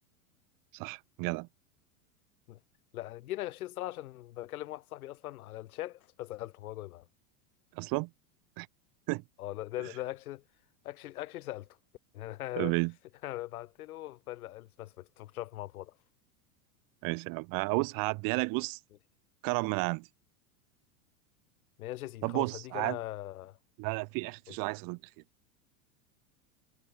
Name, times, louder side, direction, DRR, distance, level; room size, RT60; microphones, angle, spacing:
voice 1, 0.7-1.5 7.7-8.1 8.6-8.7 9.1-9.2 12.5-12.9 17.0-18.8 19.4-20.1 22.2-23.0 23.8-25.0, right 29 dB, 50° right, 3.0 m, -32 dB
voice 2, 2.9-7.1 9.4-10.4 10.8-11.7 12.1-12.7 13.2-15.9 21.8-23.6 24.5-24.6, left 15 dB, 80° left, 2.4 m, -40 dB
supercardioid pair, 130°, 43 cm